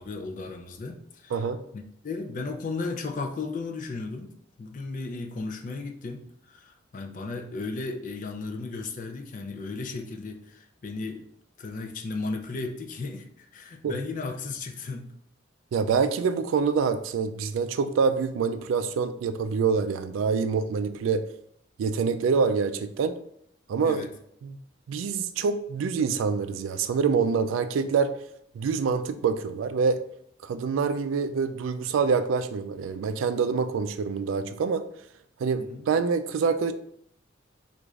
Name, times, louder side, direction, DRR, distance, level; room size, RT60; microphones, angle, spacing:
voice 1, 0.0-1.5 1.7-4.3 4.6-11.3 11.6-15.1 23.8-24.1 35.5-35.8, left 3 dB, 40° left, 5 dB, 0.4 m, -35 dB
voice 2, 15.7-21.2 21.8-23.2 23.7-24.1 24.4-24.6 24.9-28.1 28.5-30.0 30.4-34.9 35.4-36.7, right 5 dB, 85° right, 10 dB, 0.3 m, -26 dB
3.1 x 2.4 x 3.5 m, 0.69 s
head